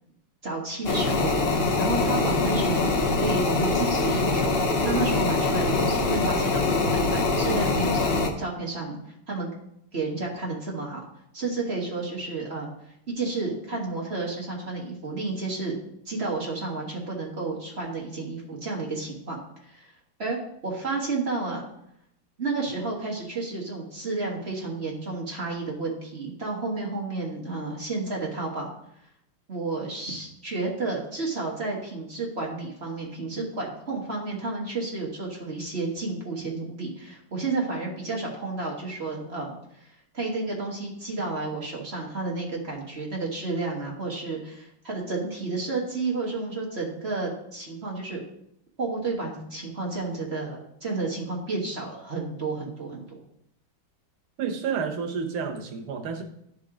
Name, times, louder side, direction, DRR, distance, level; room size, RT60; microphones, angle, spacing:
voice 1, 0.4-9.0 9.3-9.5 9.9-11.0 11.3-12.7 13.2-15.7 16.0-19.9 20.2-21.6 22.4-28.7 29.5-48.2 48.8-53.2, right 3 dB, 35° right, -2 dB, 1.4 m, -31 dB
sound 1, 0.8-8.3, left 3 dB, 55° left, 0.6 m, -24 dB
voice 2, 54.4-56.2, right 6 dB, 90° right, 4 dB, 1.9 m, -30 dB
11.5 x 4.7 x 3.8 m, 0.76 s
omnidirectional pair, 2.3 m